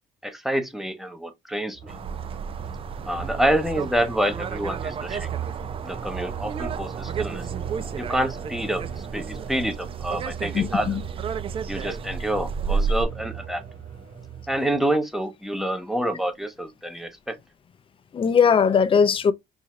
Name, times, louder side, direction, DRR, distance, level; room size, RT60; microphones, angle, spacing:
voice 1, 0.2-1.9 3.0-5.3 5.8-7.5 8.0-10.9 11.7-13.6 14.5-17.4, right 1 dB, ahead, 0.9 m, -27 dB
sound 1, 1.7-14.8, right 8 dB, 50° right, 2.6 m, -37 dB
sound 2, 1.9-13.1, right 5 dB, 35° right, 0.4 m, -32 dB
voice 2, 10.5-11.0 18.1-19.3, left 6 dB, 30° left, 0.5 m, -19 dB
4.7 x 2.7 x 2.3 m
cardioid pair, 110°, 17 cm